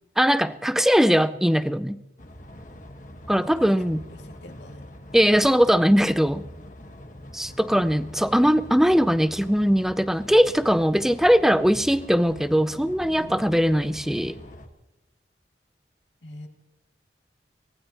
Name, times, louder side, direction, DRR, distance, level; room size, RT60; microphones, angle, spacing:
voice 1, 0.2-2.0 3.3-4.0 5.1-6.4 7.3-14.4, equal, ahead, 0.4 m, -20 dB
sound 1, 2.2-14.7, equal, 45° left, 1.4 m, -44 dB
voice 2, 4.1-4.9 13.0-13.4 16.2-16.5, left 1 dB, 85° left, 2.3 m, -44 dB
24.5 x 19.0 x 2.9 m
head